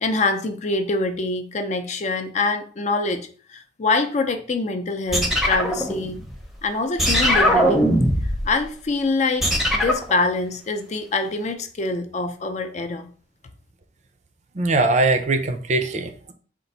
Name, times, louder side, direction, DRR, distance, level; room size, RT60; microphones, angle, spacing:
voice 1, 0.0-6.2 6.6-7.9 8.4-13.1, left 3 dB, 40° left, 7 dB, 0.5 m, -25 dB
sound 1, 5.1-6.5 7.0-8.5 9.4-10.1, equal, ahead, 0.7 m, -20 dB
voice 2, 14.6-16.3, right 2 dB, 40° right, 7 dB, 0.5 m, -21 dB
4.4 x 2.5 x 3.9 m, 0.42 s
head